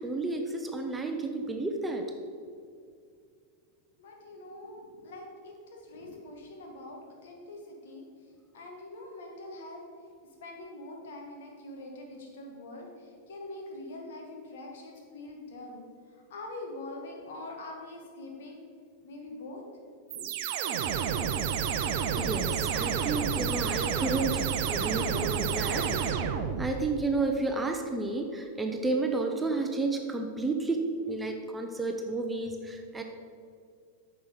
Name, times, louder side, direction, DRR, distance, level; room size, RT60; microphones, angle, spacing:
voice 1, 0.0-2.1 22.2-33.0, right 3 dB, 10° right, 3 dB, 0.8 m, -31 dB
voice 2, 4.0-8.1 8.5-9.8 10.4-15.8 16.3-18.6 19.0-19.6 20.1-20.3, left 2 dB, 60° left, 1 dB, 1.7 m, -44 dB
sound 1, 20.1-26.9, right 7 dB, 50° right, 0.6 m, -30 dB
9.0 x 6.1 x 5.0 m, 2.2 s
figure-of-eight pair, 90°, 0 cm